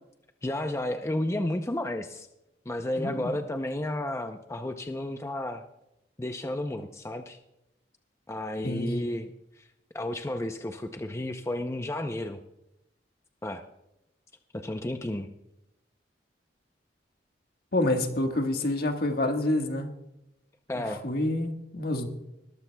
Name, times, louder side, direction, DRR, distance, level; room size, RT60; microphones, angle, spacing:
voice 1, 0.4-2.3 2.7-5.6 6.2-7.4 8.3-9.3 9.6-9.7 9.9-12.4 13.4-13.6 14.5-15.3 20.7-21.0, left 1 dB, 15° left, 6 dB, 0.6 m, -32 dB
voice 2, 3.0-3.3 8.6-9.1 17.7-19.9 20.7-22.1, left 1 dB, 60° left, 4 dB, 1.6 m, -28 dB
20.5 x 13.5 x 2.3 m, 0.86 s
head